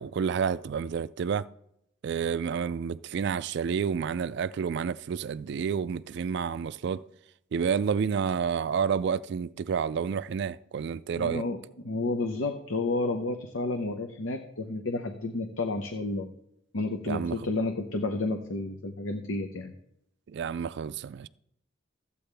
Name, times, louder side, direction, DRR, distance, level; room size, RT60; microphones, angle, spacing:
voice 1, 0.0-1.5 2.0-7.0 7.5-11.4 17.1-17.4 20.3-21.3, right 6 dB, 60° right, 0.3 m, -29 dB
voice 2, 11.2-16.3 16.7-19.7, left 2 dB, 80° left, 0.8 m, -31 dB
14.0 x 8.5 x 3.4 m
head